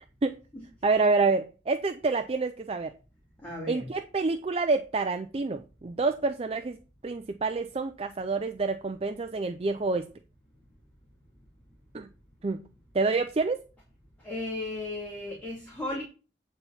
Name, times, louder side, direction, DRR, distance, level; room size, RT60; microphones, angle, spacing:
voice 1, 0.8-2.9 3.7-6.8 7.0-10.1 11.9-12.1 12.4-12.6 12.9-13.6, right 3 dB, 35° right, 0.4 m, -27 dB
voice 2, 3.4-3.9 14.2-16.0, left 2 dB, 10° left, 2.3 m, -35 dB
8.9 x 4.1 x 5.7 m
head